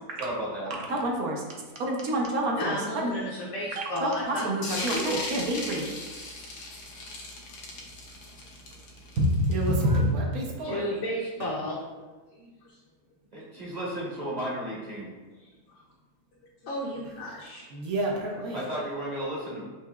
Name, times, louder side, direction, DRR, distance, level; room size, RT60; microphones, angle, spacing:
voice 1, 0.2-0.7 10.6-10.8 13.3-15.1 18.5-19.6, right 1 dB, 35° right, -6 dB, 0.9 m, -33 dB
voice 2, 0.9-1.4 1.8-2.7 3.0-3.1 3.8-5.8 9.2-10.7 17.7-18.6, right 1 dB, 70° right, 0 dB, 1.1 m, -27 dB
voice 3, 2.6-4.5 10.6-11.8 12.3-12.8 15.4-15.8 16.6-17.7 18.3-18.4, left 1 dB, 60° left, -5 dB, 0.9 m, -34 dB
sound 1, 4.6-9.9, left 2 dB, 85° left, 1.3 m, -37 dB
5.9 x 2.7 x 2.3 m, 1.3 s
omnidirectional pair, 1.7 m